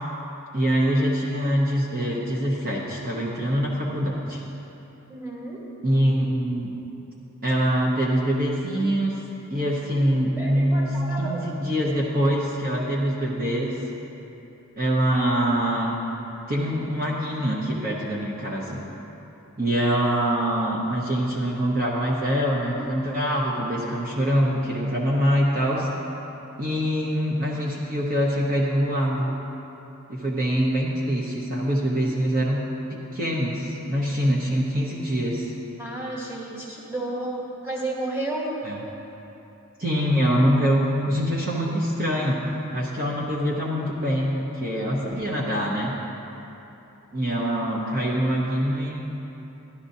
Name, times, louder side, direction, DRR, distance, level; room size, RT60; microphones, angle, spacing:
voice 1, 0.5-4.4 5.8-6.7 7.4-9.1 9.5-13.8 14.8-16.0 16.5-18.8 19.6-25.9 26.6-29.4 30.1-35.5 38.6-38.8 39.8-42.4 42.7-46.0 47.1-49.1, equal, 40° right, -4 dB, 0.9 m, -24 dB
voice 2, 5.1-5.6 10.4-11.4 35.8-38.5, right 1 dB, 10° right, -5 dB, 1.4 m, -32 dB
13.0 x 11.5 x 2.7 m, 3.0 s
head